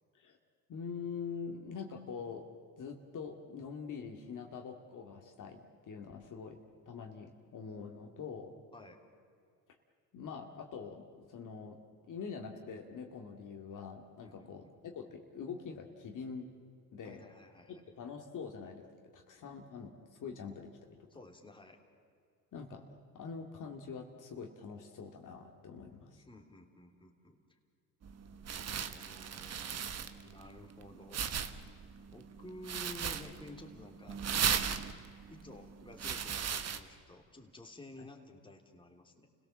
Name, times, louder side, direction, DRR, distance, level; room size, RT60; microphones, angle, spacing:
voice 1, 0.7-2.5 2.8-6.6 6.9-8.5 10.1-11.8 12.1-16.5 16.9-17.2 17.7-18.9 19.1-19.9 20.2-21.1 22.5-26.2, left 5 dB, 50° left, 2 dB, 2.3 m, -44 dB
voice 2, 14.2-14.7 17.0-17.8 21.1-21.8 26.1-27.4 28.3-31.2 32.1-34.2 35.3-39.3, left 1 dB, 10° left, 2 dB, 3.1 m, -52 dB
sound 1, 28.0-36.8, right 7 dB, 40° right, 1.3 m, -37 dB
29.5 x 17.5 x 7.4 m, 2.3 s
supercardioid pair, 90°, 40 cm